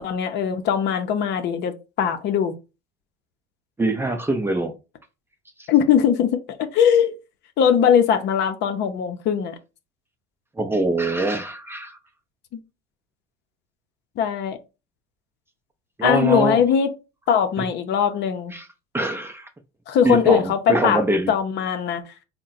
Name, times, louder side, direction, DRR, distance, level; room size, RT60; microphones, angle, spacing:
voice 1, 0.0-2.5 5.7-7.1 7.6-9.6 14.2-14.6 16.0-16.9 17.3-18.5 19.9-21.0 21.3-22.0, left 8 dB, 55° left, 0.7 m, -20 dB
voice 2, 3.8-4.8 5.6-5.7 10.6-12.0 16.0-16.6 17.6-17.7 18.5-18.7 18.9-19.5 20.0-21.3, right 2 dB, 10° right, 0.5 m, -23 dB
3.6 x 2.2 x 4.0 m
supercardioid pair, 100°, 21 cm